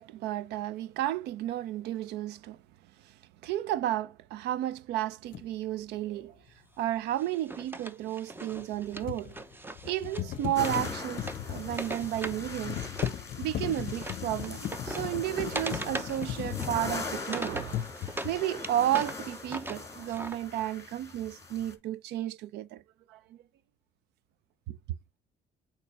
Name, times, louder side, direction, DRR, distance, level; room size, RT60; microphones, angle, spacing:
voice 1, 0.0-2.6 3.4-6.4 6.8-9.3 9.8-12.8 13.4-17.8 18.2-22.8 23.1-23.4 24.7-24.8, right 13 dB, 80° right, 0.6 m, -32 dB
sound 1, 5.3-5.5 8.5-17.3 17.7-18.5, left 11 dB, 55° left, 0.6 m, -37 dB
Wood, 7.2-13.2 13.5-18.3 18.6-20.4, right 2 dB, 10° right, 0.8 m, -40 dB
sound 2, 10.5-21.7, left 3 dB, 20° left, 2.3 m, -41 dB
8.6 x 3.1 x 4.9 m
cardioid pair, 110°, 17 cm